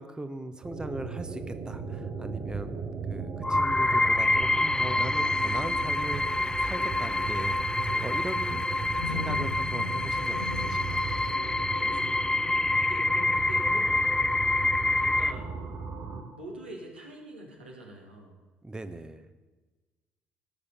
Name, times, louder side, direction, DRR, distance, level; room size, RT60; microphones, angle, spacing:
voice 1, 0.0-8.7 9.1-11.0 13.2-13.3 18.6-19.3, right 2 dB, 15° right, 10 dB, 0.9 m, -39 dB
sound 1, 0.6-16.2, right 4 dB, 55° right, 3.7 m, -37 dB
sound 2, 3.4-15.3, left 2 dB, 10° left, 0.4 m, -27 dB
Thunderstorm / Rain, 5.4-11.3, left 5 dB, 90° left, 0.5 m, -42 dB
voice 2, 7.9-8.2 11.4-12.4 12.8-14.3 15.0-15.6 16.3-18.4, right 2 dB, 85° right, -2 dB, 2.4 m, -45 dB
16.5 x 6.8 x 7.2 m, 1.3 s
figure-of-eight pair, 50°, 6 cm